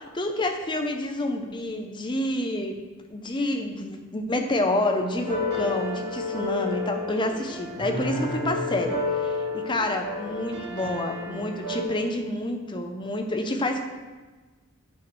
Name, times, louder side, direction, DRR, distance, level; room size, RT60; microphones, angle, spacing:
voice 1, 0.2-2.8 3.1-13.8, left 1 dB, 20° left, 4 dB, 0.6 m, -28 dB
sound 1, 5.1-11.8, left 2 dB, 80° right, 1.7 m, -31 dB
10.0 x 5.1 x 3.1 m, 1.3 s
head